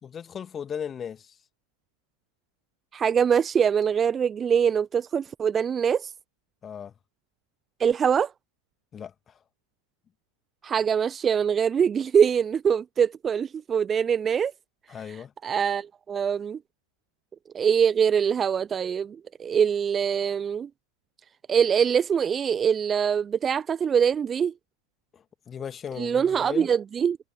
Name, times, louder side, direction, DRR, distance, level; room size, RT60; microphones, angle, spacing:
voice 1, 0.0-1.4 6.6-6.9 8.9-9.4 14.9-15.3 25.1-26.7, left 8 dB, 20° left, 2.6 m, -37 dB
voice 2, 2.9-6.1 7.8-8.3 10.6-14.5 15.4-16.6 17.5-20.7 21.5-24.5 26.0-27.2, right 7 dB, 20° right, 1.0 m, -23 dB
figure-of-eight pair, 90°, 0 cm